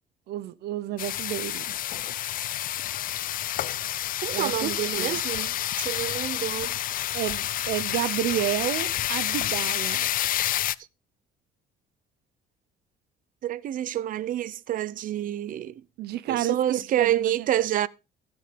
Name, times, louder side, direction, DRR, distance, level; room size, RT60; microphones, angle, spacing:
voice 1, 0.3-1.7 4.3-5.2 7.1-10.1 16.0-17.5, right 13 dB, 75° right, 1.0 m, -30 dB
sound 1, 1.0-10.7, left 13 dB, 55° left, 0.6 m, -29 dB
voice 2, 4.2-5.5 5.8-6.7 13.4-15.7 16.3-17.9, right 12 dB, 55° right, 0.7 m, -28 dB
14.5 x 7.2 x 5.2 m
cardioid pair, 110°, 17 cm